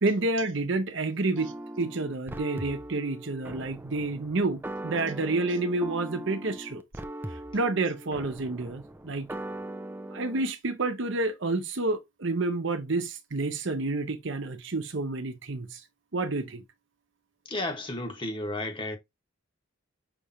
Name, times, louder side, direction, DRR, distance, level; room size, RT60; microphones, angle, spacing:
voice 1, 0.0-6.8 7.5-9.3 10.1-15.8 16.1-16.6, right 2 dB, 65° right, 0.8 m, -29 dB
sound 1, 1.4-10.4, right 1 dB, 10° right, 0.4 m, -40 dB
voice 2, 17.5-19.0, left 1 dB, 25° left, 1.3 m, -32 dB
5.8 x 3.3 x 2.7 m
head